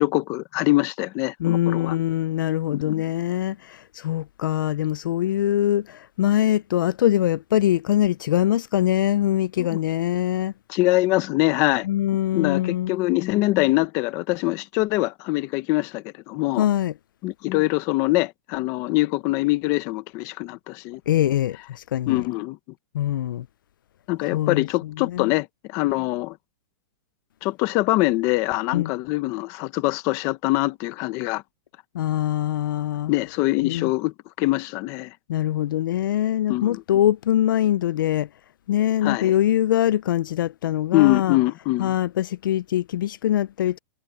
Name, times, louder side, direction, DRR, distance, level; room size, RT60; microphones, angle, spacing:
voice 1, 0.0-2.0 2.7-2.9 9.6-9.7 10.7-11.9 12.3-16.7 17.2-21.0 22.1-22.6 24.1-26.4 27.4-31.4 33.1-35.1 36.5-36.8 39.0-39.3 40.9-41.9, left 20 dB, 25° left, 0.9 m, -23 dB
voice 2, 1.4-10.5 11.8-13.0 16.6-16.9 21.1-22.2 22.9-23.5 24.3-25.3 28.7-28.9 31.9-33.1 33.6-33.9 35.3-38.3 38.7-41.4 41.8-43.8, left 12 dB, 75° left, 0.4 m, -23 dB
supercardioid pair, 175°, 11 cm